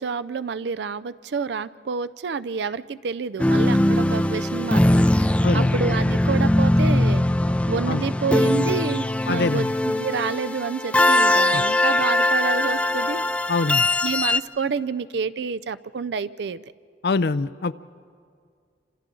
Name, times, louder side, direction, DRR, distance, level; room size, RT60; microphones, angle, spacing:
voice 1, 0.0-7.2 7.7-13.2 14.0-16.6, right 5 dB, 70° right, 15 dB, 0.4 m, -29 dB
sound 1, 3.4-14.4, left 1 dB, 5° left, 0.4 m, -21 dB
voice 2, 9.3-9.7 11.5-11.6 13.5-13.9 17.0-17.7, left 3 dB, 60° left, 15 dB, 0.5 m, -24 dB
28.5 x 26.0 x 3.8 m, 2.2 s
head